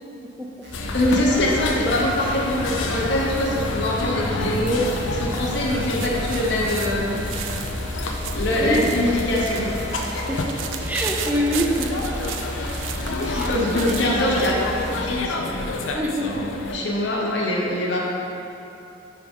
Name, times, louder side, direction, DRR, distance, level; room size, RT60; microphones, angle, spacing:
sound 1, 0.6-15.0, equal, 60° right, 1.0 m, -35 dB
sound 2, 0.7-16.7, left 2 dB, 85° left, 0.5 m, -29 dB
voice 1, 0.9-7.1 8.3-9.7 11.3-11.4 13.2-14.6 15.0-15.6 16.2-18.0, left 1 dB, 65° left, -4 dB, 0.8 m, -23 dB
sound 3, 5.3-14.6, right 9 dB, 85° right, 0.3 m, -36 dB
voice 2, 10.8-12.0 13.3-13.8 15.9-16.3, equal, 10° right, -1 dB, 0.4 m, -25 dB
4.7 x 3.7 x 5.3 m, 2.9 s
head